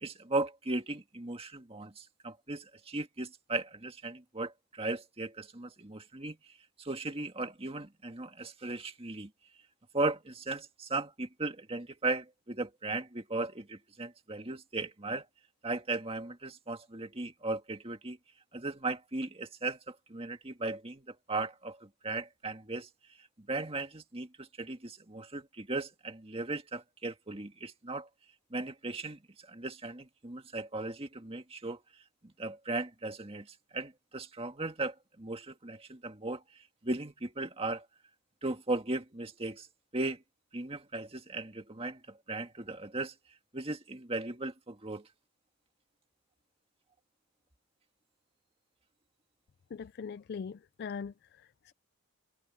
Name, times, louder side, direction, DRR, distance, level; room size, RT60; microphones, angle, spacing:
voice 1, 0.0-6.4 6.8-9.3 9.9-15.3 15.6-18.2 18.5-22.9 23.4-28.1 28.5-31.8 32.2-36.4 36.8-37.9 38.4-39.7 39.9-40.2 40.5-43.1 43.5-45.1, right 2 dB, 25° right, 1.8 m, -37 dB
voice 2, 49.7-51.7, left 6 dB, 45° left, 0.3 m, -41 dB
head